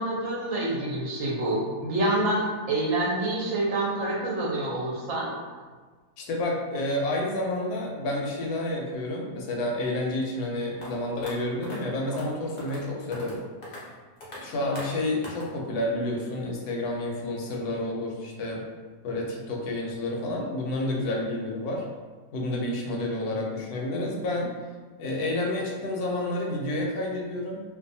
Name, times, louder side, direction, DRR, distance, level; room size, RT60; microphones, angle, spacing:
voice 1, 0.0-5.3, right 1 dB, 65° right, -4 dB, 0.9 m, -27 dB
voice 2, 6.2-13.4 14.4-18.6 19.0-21.8 22.3-24.5 25.0-27.6, left 1 dB, 85° left, -1 dB, 1.1 m, -29 dB
sound 1, 10.8-10.9 11.2-11.3 11.6-11.8 12.1-12.3 12.6-12.8 13.1-13.4 13.6-13.8 14.2-14.4 14.8-14.9 15.2-15.5, left 1 dB, 65° left, 0.4 m, -40 dB
2.6 x 2.2 x 2.6 m, 1.4 s
omnidirectional pair, 1.6 m